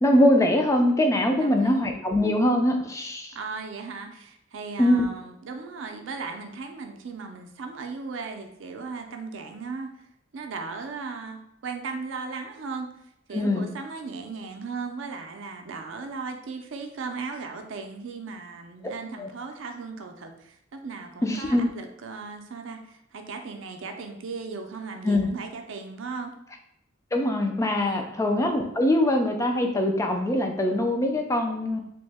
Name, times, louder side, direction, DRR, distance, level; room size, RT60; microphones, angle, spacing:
voice 1, 0.0-3.3 4.8-5.0 13.3-13.7 19.2-19.3 21.2-21.7 25.0-25.3 27.1-31.8, left 1 dB, 15° left, 3 dB, 0.3 m, -22 dB
voice 2, 1.4-1.9 3.3-10.0 10.3-12.9 13.3-26.3 27.8-28.2, right 4 dB, 70° right, 4 dB, 0.4 m, -37 dB
2.9 x 2.1 x 3.3 m, 0.76 s
head